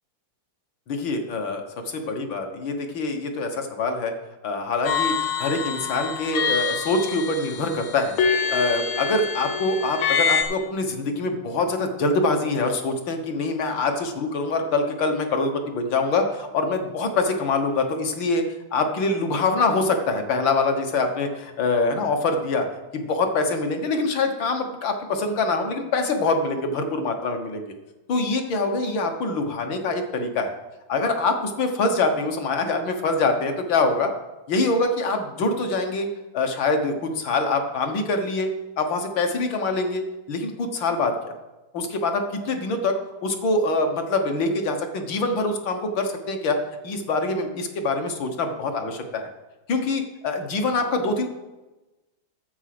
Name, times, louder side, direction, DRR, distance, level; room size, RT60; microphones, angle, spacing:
voice 1, 0.9-4.1 4.4-8.2 8.5-18.4 18.7-22.7 22.9-27.7 28.1-30.5 30.9-34.1 34.5-36.1 36.3-41.1 41.7-46.6 46.8-49.3 49.7-51.3, left 3 dB, 65° left, 4 dB, 1.9 m, -24 dB
sound 1, 4.8-10.4, left 6 dB, 85° left, 2.0 m, -26 dB
9.9 x 7.6 x 5.9 m, 1.1 s
omnidirectional pair, 2.4 m